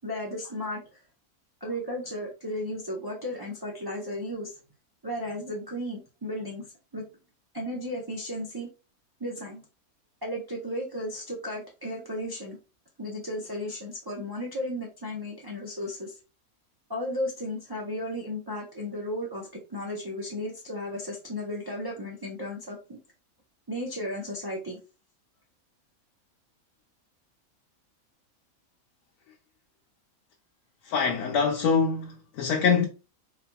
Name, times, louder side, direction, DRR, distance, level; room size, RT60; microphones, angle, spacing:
voice 1, 0.0-0.8 1.6-4.6 5.0-6.7 6.9-7.0 7.5-8.7 9.2-9.6 10.2-12.6 13.0-16.2 16.9-23.0 23.7-24.8, left 1 dB, 30° right, 0.4 m, -34 dB
voice 2, 30.8-32.9, left 5 dB, 90° left, 1.1 m, -24 dB
4.0 x 2.8 x 2.2 m
omnidirectional pair, 1.5 m